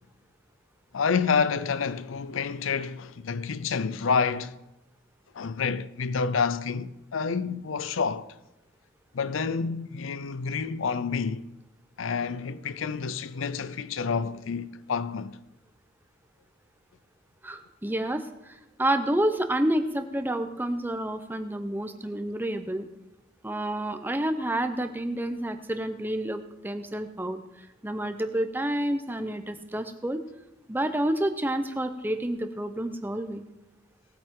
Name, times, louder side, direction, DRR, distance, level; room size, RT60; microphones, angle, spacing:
voice 1, 0.9-4.5 5.3-8.3 9.1-11.4 12.0-15.4, left 5 dB, 75° left, 0.5 m, -28 dB
voice 2, 17.4-22.9 23.4-27.4 27.8-30.2 30.7-33.4, right 1 dB, 10° right, 0.7 m, -29 dB
18.5 x 8.8 x 3.7 m
head